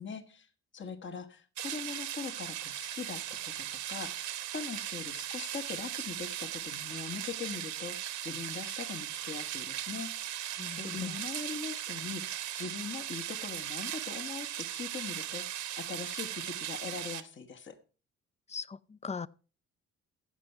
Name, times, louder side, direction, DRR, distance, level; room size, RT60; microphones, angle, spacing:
voice 1, 0.0-4.2 4.5-10.1 10.8-15.5 15.8-17.8, left 5 dB, 40° left, 1.3 m, -41 dB
sound 1, 1.6-17.2, right 12 dB, 75° right, 1.0 m, -38 dB
voice 2, 10.6-11.2 18.5-19.3, left 5 dB, 25° left, 0.4 m, -40 dB
15.0 x 5.4 x 5.8 m
cardioid pair, 90°, 30 cm